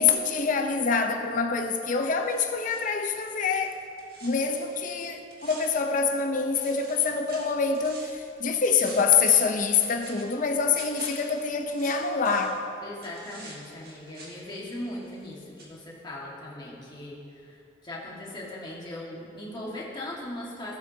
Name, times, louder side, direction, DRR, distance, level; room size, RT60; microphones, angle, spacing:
voice 1, 0.0-3.8 4.2-12.6, left 5 dB, 45° left, 0.7 m, -25 dB
sound 1, 2.2-6.3 6.5-8.3 8.6-12.6 13.0-15.3 15.6-15.7, right 2 dB, 55° right, 1.7 m, -47 dB
voice 2, 12.8-17.6 17.8-20.8, left 1 dB, 25° left, 1.7 m, -39 dB
15.5 x 8.2 x 2.8 m
head